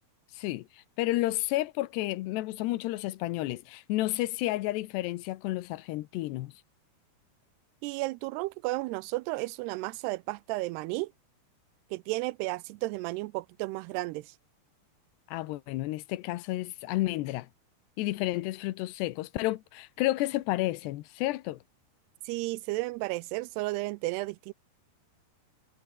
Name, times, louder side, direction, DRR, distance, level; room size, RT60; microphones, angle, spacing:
voice 1, 0.3-6.5 15.3-17.5 18.0-21.6, left 17 dB, 90° left, 3.1 m, -31 dB
voice 2, 7.8-11.1 11.9-14.3 22.3-24.5, right 21 dB, 85° right, 2.6 m, -33 dB
omnidirectional pair, 4.7 m